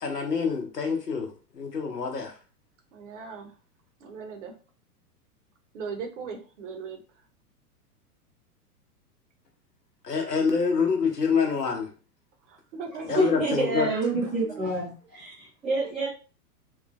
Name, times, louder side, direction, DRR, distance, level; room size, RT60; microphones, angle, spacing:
voice 1, 0.0-2.3 10.0-11.9 13.1-13.9, left 5 dB, 90° left, 5 dB, 0.7 m, -26 dB
voice 2, 2.9-3.5 4.0-4.5 5.7-7.0 12.5-13.2 14.4-14.8, right 5 dB, 50° right, 4 dB, 0.7 m, -38 dB
voice 3, 13.0-16.1, right 1 dB, ahead, -12 dB, 0.3 m, -27 dB
3.0 x 2.0 x 2.4 m, 0.37 s
figure-of-eight pair, 100°, 47 cm